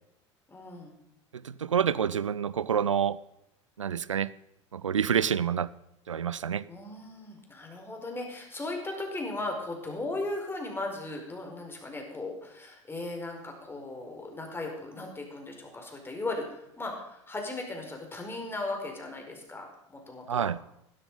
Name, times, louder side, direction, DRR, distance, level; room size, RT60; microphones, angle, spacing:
voice 1, 0.5-0.9 6.7-20.5, left 2 dB, 15° left, 4.9 m, -37 dB
voice 2, 1.3-3.2 3.8-4.3 4.7-5.7 6.1-6.6 20.3-20.6, right 8 dB, 85° right, 0.5 m, -27 dB
16.0 x 13.0 x 5.6 m
figure-of-eight pair, 75°, 16 cm